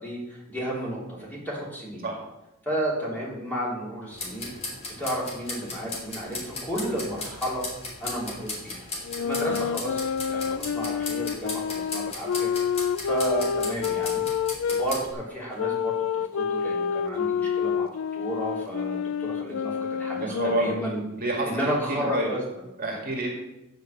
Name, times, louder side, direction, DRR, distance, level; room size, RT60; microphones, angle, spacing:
voice 1, 0.0-2.1 2.6-4.5 5.0-7.6 8.0-8.9 9.2-12.5 13.0-14.3 14.8-16.0 16.3-21.0 21.5-22.4, right 1 dB, 10° left, -6 dB, 3.5 m, -32 dB
sound 1, 4.1-15.1, left 2 dB, 30° left, 2.7 m, -37 dB
sound 2, 9.0-14.9 15.6-21.0, left 7 dB, 65° left, 0.3 m, -28 dB
voice 2, 20.2-20.7 21.2-22.3 22.8-23.3, right 2 dB, 45° right, 0 dB, 1.9 m, -29 dB
9.4 x 5.3 x 7.7 m, 0.92 s
head